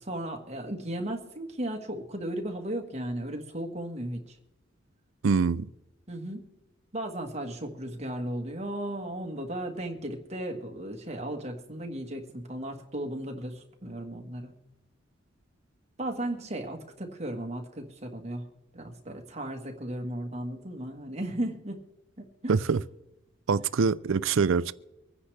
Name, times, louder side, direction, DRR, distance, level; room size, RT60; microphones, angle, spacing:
voice 1, 0.0-4.4 6.1-6.4 6.9-14.5 16.0-18.5 18.7-21.8 22.2-22.6, right 1 dB, 35° right, 1.6 m, -35 dB
voice 2, 5.2-5.7 22.5-22.8 23.5-24.7, right 5 dB, 80° right, 0.5 m, -24 dB
24.5 x 9.9 x 3.4 m
head